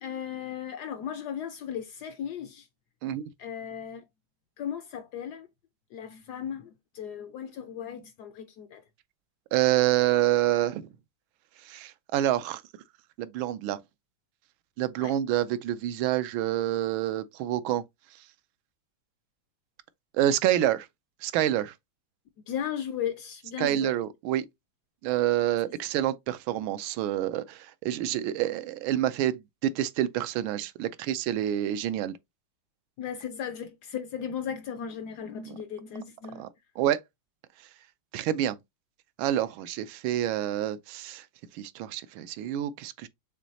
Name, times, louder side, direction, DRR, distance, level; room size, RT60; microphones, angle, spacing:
voice 1, 0.0-2.7 3.4-4.0 4.6-5.5 5.9-8.8 15.0-15.1 22.5-24.0 33.0-36.5, left 8 dB, 75° left, 0.9 m, -36 dB
voice 2, 9.5-10.9 11.6-12.6 13.2-13.8 14.8-17.8 20.1-20.9 21.2-21.7 23.6-24.5 25.0-32.2 36.4-36.5 36.8-37.0 38.1-38.6 39.2-41.2 41.5-43.1, right 12 dB, 90° right, 1.4 m, -27 dB
6.2 x 3.1 x 2.7 m
omnidirectional pair, 2.2 m